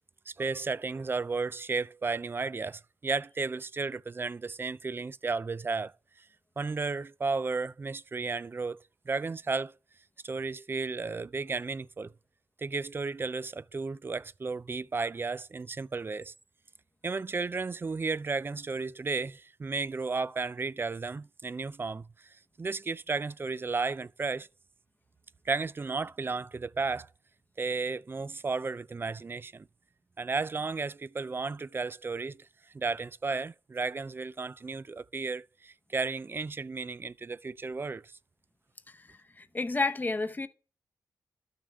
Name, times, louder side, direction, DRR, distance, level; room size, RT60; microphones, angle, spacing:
voice 1, 0.3-5.9 6.6-8.8 9.1-9.7 10.2-12.1 12.6-16.3 17.0-24.5 25.5-27.1 27.6-29.7 30.2-32.5 32.7-38.1, right 4 dB, 30° right, 0.3 m, -33 dB
voice 2, 38.9-40.5, left 3 dB, 25° left, 0.8 m, -31 dB
12.0 x 6.5 x 3.5 m
cardioid pair, 70°, 7 cm